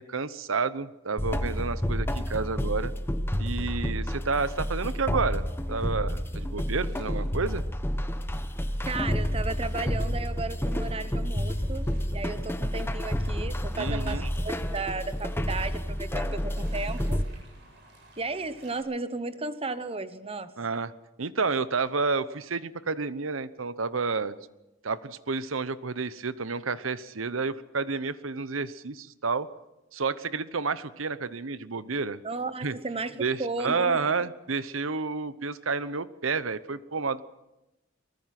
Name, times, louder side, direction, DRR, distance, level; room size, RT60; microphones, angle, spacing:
voice 1, 0.0-2.9 3.4-7.6 13.8-14.3 20.6-20.9 21.2-24.4 24.8-29.5 29.9-32.2 32.6-32.7 33.2-37.2, right 4 dB, 80° right, 15 dB, 0.9 m, -30 dB
sound 1, 1.2-17.2, equal, 10° left, 1.0 m, -30 dB
sound 2, 5.5-18.8, right 2 dB, 60° right, 8.0 m, -57 dB
voice 2, 8.9-17.2 18.2-20.5 32.2-34.3, right 3 dB, 30° right, 12 dB, 1.1 m, -34 dB
24.0 x 19.5 x 6.0 m, 0.95 s
head